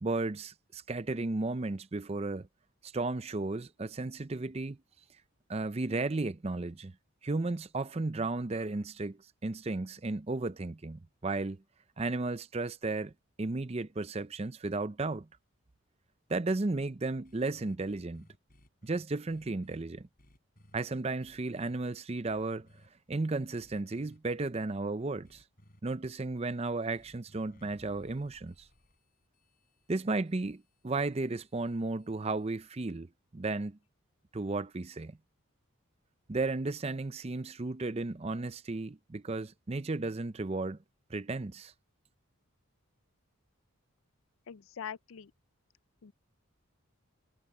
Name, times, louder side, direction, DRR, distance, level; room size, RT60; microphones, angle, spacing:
voice 1, 0.0-2.5 2.8-4.8 5.5-6.9 7.2-11.6 12.0-13.1 13.4-15.3 16.3-18.3 18.8-20.1 20.7-22.7 23.1-25.4 25.8-28.7 29.9-33.8 34.3-35.2 36.3-40.8 41.1-41.7, right 3 dB, 30° right, 0.5 m, -34 dB
sound 1, 17.2-19.8 20.2-20.8 21.2-21.7 22.3-22.9 23.6-24.2 25.2-25.8 27.0-32.8, equal, 40° left, 7.5 m, -61 dB
voice 2, 44.5-45.3 46.0-46.1, left 8 dB, 65° left, 0.4 m, -43 dB
head